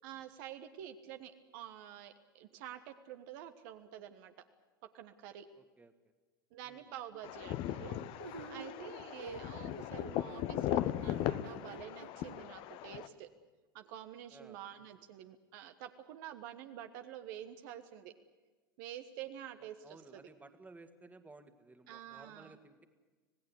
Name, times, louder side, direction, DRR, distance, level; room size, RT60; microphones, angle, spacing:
voice 1, 0.0-4.3 4.9-5.4 6.5-13.3 13.7-18.1 18.8-20.2 21.9-22.6, right 11 dB, 60° right, 8 dB, 1.4 m, -48 dB
voice 2, 5.6-5.9 6.6-6.9 9.0-9.1 14.3-14.6 19.6-22.8, right 3 dB, 15° right, 8 dB, 2.0 m, -57 dB
sound 1, 7.2-13.1, left 13 dB, 50° left, 1.1 m, -38 dB
sound 2, 8.2-12.3, right 4 dB, 90° right, 1.3 m, -49 dB
26.0 x 17.5 x 8.3 m, 1.3 s
hypercardioid pair, 80°, 12 cm